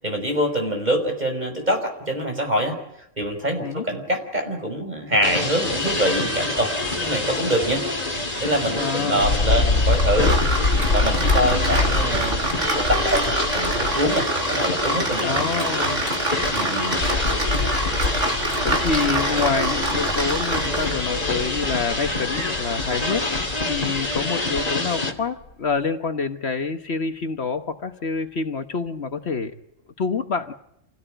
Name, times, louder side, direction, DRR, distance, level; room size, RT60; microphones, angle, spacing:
voice 1, 0.0-2.8 3.2-6.7 7.0-7.8 8.4-10.4 10.9-12.4 12.8-15.3 16.5-17.0, equal, 35° right, 5.8 m, -24 dB
sound 1, 5.2-25.1, left 2 dB, 30° left, 2.5 m, -27 dB
voice 2, 8.8-9.3 11.4-11.9 15.2-16.1 18.6-29.5 30.0-30.5, left 5 dB, 60° left, 1.5 m, -27 dB
sound 2, 9.2-14.2 14.7-14.8 16.1-24.7 25.4-25.5, left 3 dB, 85° left, 2.4 m, -26 dB
sound 3, 9.9-21.0, right 2 dB, 75° right, 3.3 m, -26 dB
28.5 x 17.0 x 9.1 m
omnidirectional pair, 1.3 m